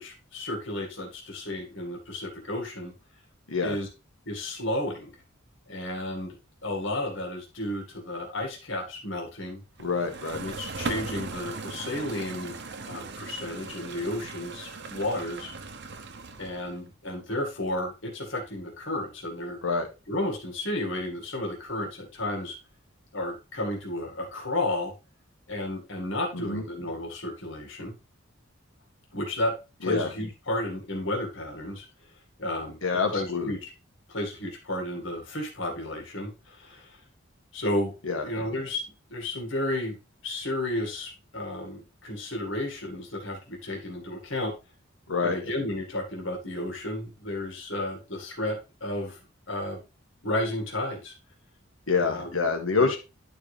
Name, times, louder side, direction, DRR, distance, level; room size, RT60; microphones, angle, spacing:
voice 1, 0.0-2.9 3.6-3.9 4.3-5.1 5.7-9.6 10.3-12.6 12.8-15.5 16.4-19.6 20.1-22.6 23.1-24.9 25.5-28.0 29.1-29.5 29.8-31.9 32.4-32.8 33.1-33.7 34.1-37.0 37.5-37.9 38.2-38.8 39.1-40.0 40.2-44.5 45.2-49.2 49.5-49.8 50.2-51.1 51.9-52.9, left 1 dB, 65° left, 0 dB, 2.0 m, -32 dB
voice 2, 9.8-10.4 19.6-19.9 26.3-26.6 29.8-30.1 32.8-33.5 38.0-38.4 45.1-45.5 51.9-53.0, left 4 dB, 85° left, 4 dB, 1.8 m, -27 dB
sound 1, 9.8-16.8, right 3 dB, 55° right, 0.8 m, -38 dB
11.0 x 4.8 x 3.3 m, 0.28 s
head